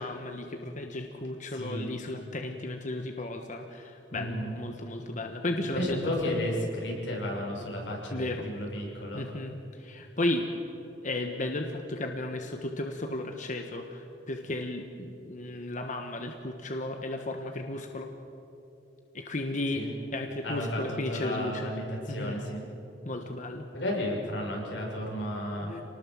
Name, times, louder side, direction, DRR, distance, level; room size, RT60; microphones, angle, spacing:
voice 1, 0.0-6.0 6.2-6.3 8.1-8.4 9.1-10.5 11.0-18.1 19.1-19.9 20.1-21.7 22.1-22.4 23.0-23.7 25.6-25.8, left 2 dB, 45° left, 4 dB, 1.4 m, -34 dB
voice 2, 1.5-1.9 4.1-4.6 5.7-9.2 19.7-19.9 20.4-20.8 21.1-22.6 23.7-25.7, left 1 dB, 90° left, -2 dB, 6.7 m, -33 dB
27.5 x 19.5 x 7.7 m, 2.9 s
head